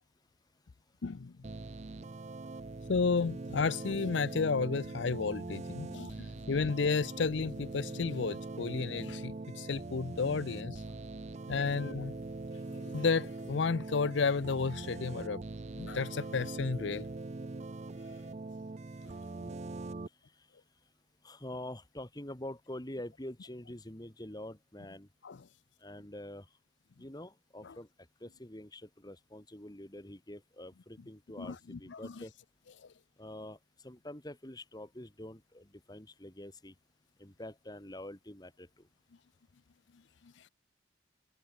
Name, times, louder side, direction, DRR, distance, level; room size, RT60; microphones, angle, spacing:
voice 1, 1.0-1.3 2.9-10.8 11.5-12.1 12.7-15.4 15.8-17.1 25.2-25.4 27.6-27.8 31.4-32.2 32.8-32.9 40.4-40.5, left 4 dB, 65° left, 0.6 m, -32 dB
sound 1, 1.4-20.1, right 3 dB, 35° right, 0.5 m, -42 dB
voice 2, 19.3-19.6 21.2-25.1 25.8-26.5 27.0-27.9 28.2-32.3 33.2-33.6 33.8-36.7 37.2-38.8, left 1 dB, 20° left, 2.0 m, -46 dB
head